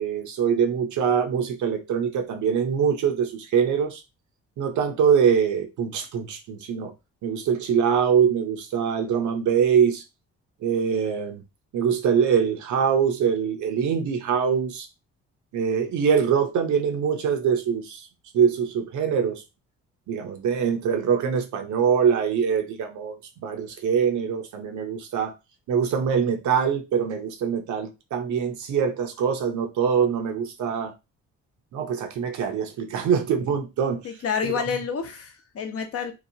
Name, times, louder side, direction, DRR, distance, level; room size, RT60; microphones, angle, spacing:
voice 1, 0.0-4.0 4.6-6.9 7.2-10.0 10.6-11.4 11.7-14.9 15.5-18.1 18.3-19.4 20.1-25.3 25.7-30.9 31.7-34.0 34.4-34.6, right 7 dB, 75° right, 0.7 m, -23 dB
voice 2, 34.0-36.1, left 6 dB, 50° left, 0.7 m, -29 dB
2.9 x 2.0 x 2.7 m
cardioid pair, 90°, 30 cm